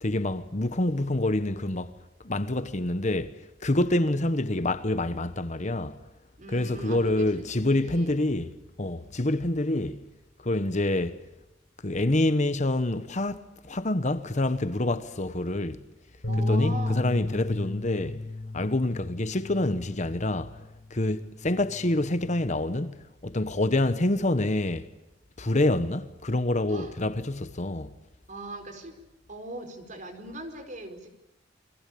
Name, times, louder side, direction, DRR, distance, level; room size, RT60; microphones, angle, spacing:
voice 1, 0.0-1.9 2.2-3.3 3.6-6.0 6.5-8.5 8.8-10.0 10.4-11.2 11.8-15.8 16.4-18.2 18.5-20.6 20.9-24.9 25.4-27.9, left 1 dB, 40° left, 1.2 m, -27 dB
voice 2, 3.7-4.0 6.4-8.2 16.3-17.0 26.7-27.0 28.3-28.9 29.3-31.1, right 2 dB, 45° right, 4.7 m, -40 dB
Bass guitar, 16.2-20.7 21.1-22.5, left 2 dB, 75° left, 7.4 m, -33 dB
29.0 x 22.5 x 8.6 m
head